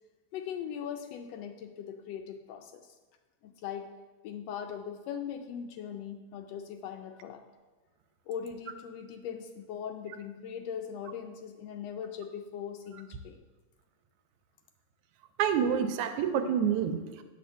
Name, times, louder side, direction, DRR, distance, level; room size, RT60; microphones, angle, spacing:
voice 1, 0.3-2.9 3.4-3.9 4.2-7.4 8.3-13.4, left 8 dB, 80° left, 6 dB, 1.5 m, -40 dB
voice 2, 15.4-17.2, right 8 dB, 85° right, 7 dB, 2.0 m, -28 dB
9.1 x 4.2 x 6.8 m, 1.3 s
omnidirectional pair, 3.4 m